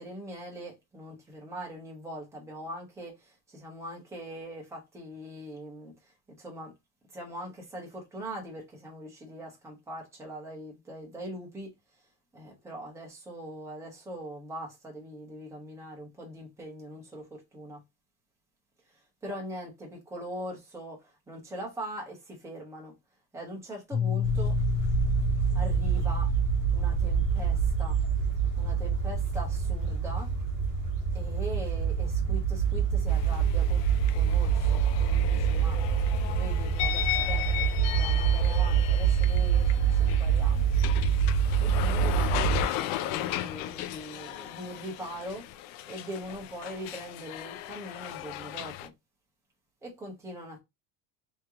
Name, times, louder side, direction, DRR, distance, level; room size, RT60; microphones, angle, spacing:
voice 1, 0.0-6.7 7.1-11.7 12.3-17.8 18.9-22.9 23.3-24.6 25.5-26.3 26.7-28.0 28.6-30.3 31.1-35.8 36.2-37.7 37.9-40.7 41.6-45.5 45.9-48.9 49.8-50.6, equal, 5° right, 1.1 m, -42 dB
Piano, 23.9-29.5, left 10 dB, 25° left, 0.9 m, -33 dB
sound 1, 24.2-42.6, right 7 dB, 20° right, 1.5 m, -26 dB
sound 2, 33.1-48.9, left 13 dB, 55° left, 0.5 m, -36 dB
3.2 x 3.1 x 3.6 m
cardioid pair, 165°, 49 cm